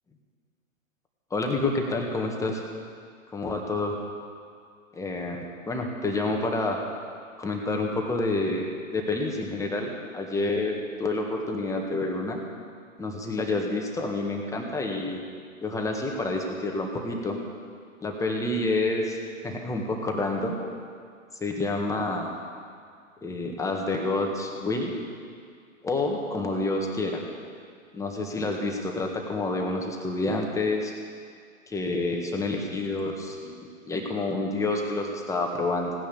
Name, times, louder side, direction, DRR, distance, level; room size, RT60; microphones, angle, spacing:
voice 1, 1.3-2.6 3.3-3.9 4.9-6.8 7.4-12.4 13.0-15.2 15.6-17.4 18.0-19.2 19.4-20.6 21.4-22.4 23.2-25.0 25.8-27.2 27.9-30.9 31.7-35.9, left 2 dB, 10° left, 1 dB, 1.7 m, -28 dB
17.0 x 10.0 x 7.1 m, 2.2 s
hypercardioid pair, 120°, 40 cm